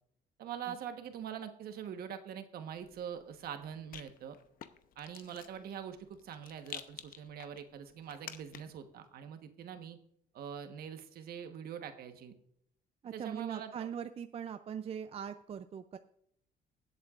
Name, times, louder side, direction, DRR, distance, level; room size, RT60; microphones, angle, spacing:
voice 1, 0.4-4.4 5.0-10.0 10.3-12.4 13.1-13.9, right 8 dB, 65° right, 7 dB, 1.2 m, -44 dB
Rattle, 2.8-8.9, left 9 dB, 55° left, 0.8 m, -51 dB
voice 2, 13.0-16.0, right 8 dB, 35° right, 10 dB, 0.5 m, -41 dB
23.0 x 7.9 x 2.5 m, 0.71 s
cardioid pair, 110°, 17 cm